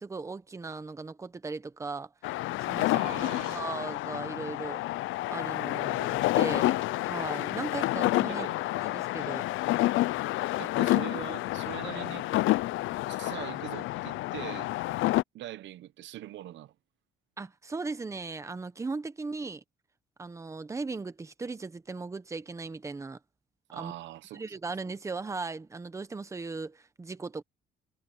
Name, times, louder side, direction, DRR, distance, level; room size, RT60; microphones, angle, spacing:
voice 1, 0.0-2.1 2.7-4.8 5.3-8.5 8.8-9.4 17.4-19.6 20.2-23.2 23.7-23.9 24.3-27.4, right 3 dB, 15° right, 1.0 m, -38 dB
sound 1, 2.2-15.2, left 17 dB, 90° left, 0.5 m, -29 dB
voice 2, 2.9-3.7 8.3-8.6 10.6-12.3 13.1-14.7 15.0-15.1 15.3-16.7 23.7-24.6, right 13 dB, 70° right, 0.9 m, -42 dB
cardioid pair, 160°, 20 cm